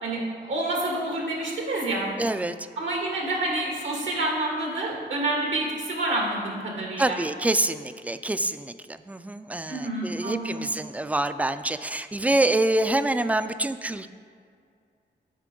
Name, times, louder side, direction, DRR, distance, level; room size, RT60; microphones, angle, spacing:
voice 1, 0.0-2.1 2.8-7.2 9.7-10.7, right 2 dB, 85° right, -1 dB, 1.7 m, -28 dB
voice 2, 2.2-2.5 7.0-14.1, right 2 dB, 10° right, 11 dB, 0.3 m, -26 dB
8.3 x 4.9 x 3.8 m, 2.2 s
cardioid pair, 65°, 19 cm